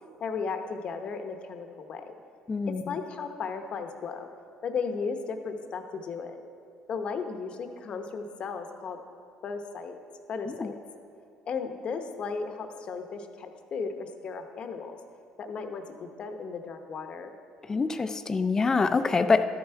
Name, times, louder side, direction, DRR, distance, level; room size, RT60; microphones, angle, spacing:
voice 1, 0.2-2.1 2.7-4.3 4.6-6.4 6.9-9.0 9.4-9.9 10.3-10.8 11.5-15.0 15.4-17.3, left 5 dB, 50° left, 6 dB, 0.8 m, -35 dB
voice 2, 2.5-2.8 10.5-10.7 17.7-19.4, left 4 dB, 25° left, 10 dB, 0.5 m, -25 dB
12.5 x 6.9 x 4.5 m, 2.7 s
cardioid pair, 105°, 2 cm